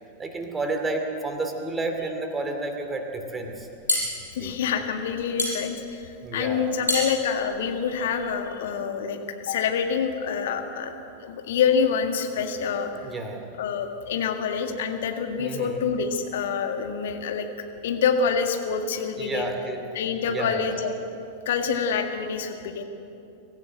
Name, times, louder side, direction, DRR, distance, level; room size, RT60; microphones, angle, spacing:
voice 1, 0.2-3.7 4.4-4.5 6.2-6.7 13.0-13.5 15.4-15.9 19.2-19.8 20.3-20.8, right 2 dB, 15° right, 4 dB, 2.7 m, -31 dB
sound 1, 3.5-8.4, left 1 dB, 90° left, 5.4 m, -30 dB
voice 2, 4.3-6.0 6.3-10.9 11.2-12.9 13.6-17.5 17.8-19.5 19.9-20.9 21.5-22.8, left 6 dB, 55° left, 5 dB, 1.9 m, -26 dB
24.5 x 15.0 x 7.8 m, 2.7 s
figure-of-eight pair, 90°, 0 cm